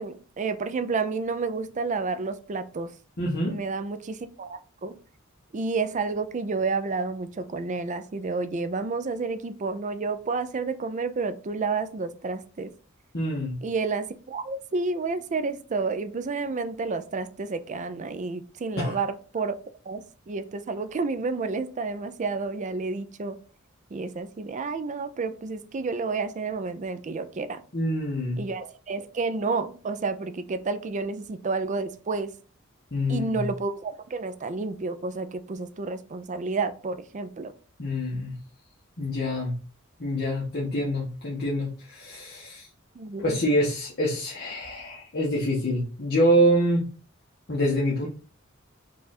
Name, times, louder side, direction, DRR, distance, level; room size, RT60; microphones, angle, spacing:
voice 1, 0.0-2.9 3.5-5.0 5.5-12.7 13.6-19.6 19.9-23.4 23.9-27.6 28.4-32.3 33.1-37.5 43.0-43.4, right 4 dB, 35° right, 11 dB, 0.4 m, -30 dB
voice 2, 3.2-3.6 13.1-13.6 18.8-19.0 27.7-28.4 32.9-33.5 37.8-38.4 39.0-39.5 40.0-42.7 43.2-46.8 47.5-48.1, equal, 50° left, -4 dB, 1.0 m, -26 dB
4.6 x 2.5 x 4.2 m, 0.38 s
head